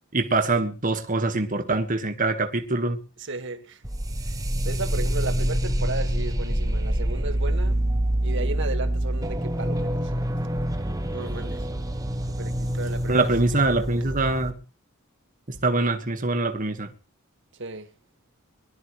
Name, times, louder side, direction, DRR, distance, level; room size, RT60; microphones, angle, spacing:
voice 1, 0.1-3.0 13.1-14.6 15.5-16.9, right 2 dB, 40° right, 1.7 m, -24 dB
voice 2, 3.2-3.8 4.6-7.8 8.2-10.2 10.9-11.7 12.4-13.3 13.7-13.9 17.6-17.9, right 3 dB, 60° right, 1.8 m, -34 dB
sound 1, 3.8-14.5, right 1 dB, 15° right, 1.1 m, -26 dB
23.0 x 12.5 x 3.3 m
head